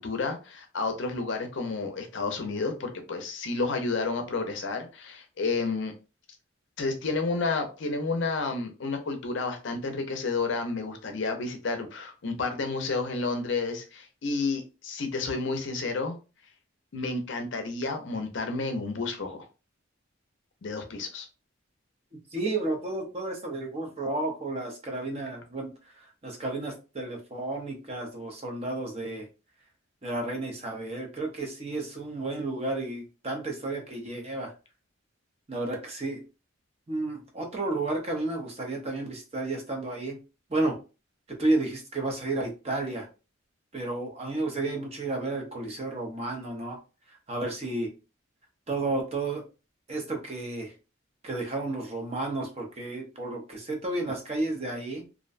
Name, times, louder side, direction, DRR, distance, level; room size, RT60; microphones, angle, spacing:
voice 1, 0.0-5.9 6.8-16.2 16.9-19.4 20.6-21.3, left 3 dB, 55° left, 6 dB, 0.5 m, -31 dB
voice 2, 22.3-29.3 30.0-34.5 35.5-36.2 36.9-40.2 40.5-40.8 41.3-43.1 43.7-46.8 47.1-47.9 48.7-49.4 49.9-50.7 51.2-55.0, right 2 dB, 30° right, 1 dB, 0.6 m, -32 dB
2.5 x 2.1 x 2.4 m, 0.31 s
head